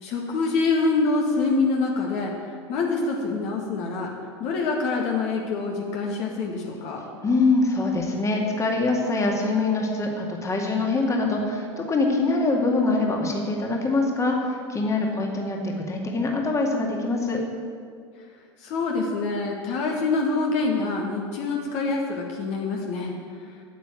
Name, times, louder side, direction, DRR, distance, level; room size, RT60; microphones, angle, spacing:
voice 1, 0.0-2.3 2.7-4.1 4.4-7.0 15.0-15.3 18.6-23.1, left 3 dB, 50° left, 0 dB, 1.9 m, -25 dB
voice 2, 7.2-17.4, left 3 dB, 20° left, 1 dB, 2.2 m, -24 dB
9.2 x 8.3 x 9.1 m, 2.1 s
figure-of-eight pair, 85°, 15 cm